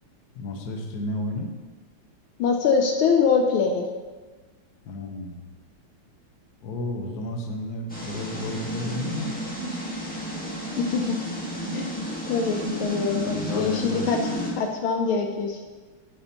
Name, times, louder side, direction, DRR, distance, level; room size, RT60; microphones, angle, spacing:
voice 1, 0.3-1.5 4.9-5.4 6.6-9.4 13.2-14.2, left 1 dB, 55° left, 3 dB, 1.3 m, -32 dB
voice 2, 2.4-3.9 10.8-11.2 11.7-11.9 12.3-14.3 14.6-15.6, left 5 dB, 75° left, 3 dB, 1.4 m, -23 dB
sound 1, 7.9-14.5, equal, 5° left, 1.2 m, -32 dB
8.6 x 8.6 x 2.9 m, 1.3 s
omnidirectional pair, 2.4 m